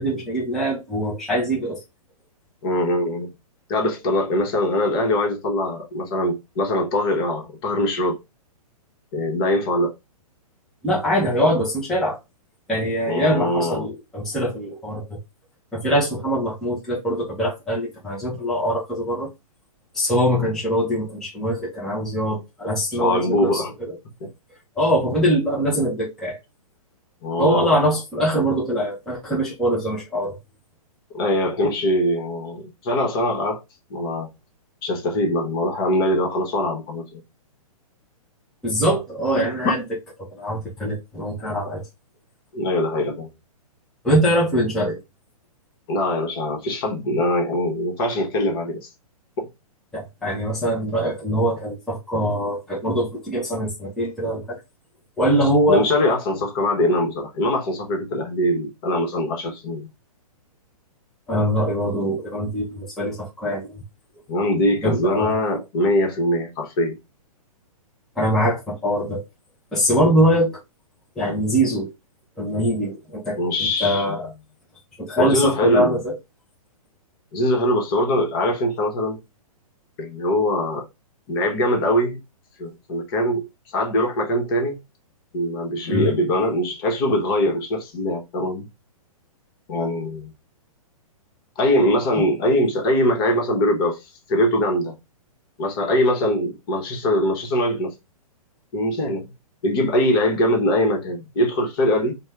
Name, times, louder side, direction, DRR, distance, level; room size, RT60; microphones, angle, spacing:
voice 1, 0.0-1.8 10.8-12.2 12.7-15.2 15.7-19.3 19.9-23.9 24.8-26.4 27.4-30.4 38.6-39.8 40.2-41.8 44.0-45.0 49.9-54.6 55.2-55.9 61.3-63.8 64.8-65.4 68.2-69.2 69.7-70.6 71.2-71.9 72.4-74.3 75.0-76.1 85.9-86.1, equal, ahead, 0.7 m, -23 dB
voice 2, 2.6-3.3 3.7-8.2 9.1-9.9 13.1-13.9 23.0-23.7 27.2-27.8 31.1-33.6 33.9-34.3 34.8-37.2 39.6-39.7 42.5-43.3 45.9-48.9 49.4-49.5 55.4-59.9 64.3-67.0 73.4-74.2 75.2-76.0 77.3-79.2 80.0-80.9 81.3-82.2 82.6-84.8 85.3-88.7 89.7-90.3 91.6-94.9 95.6-97.9 98.7-99.3 99.6-102.1, left 1 dB, 40° left, 1.1 m, -22 dB
2.7 x 2.2 x 3.3 m
hypercardioid pair, 145°, 19 cm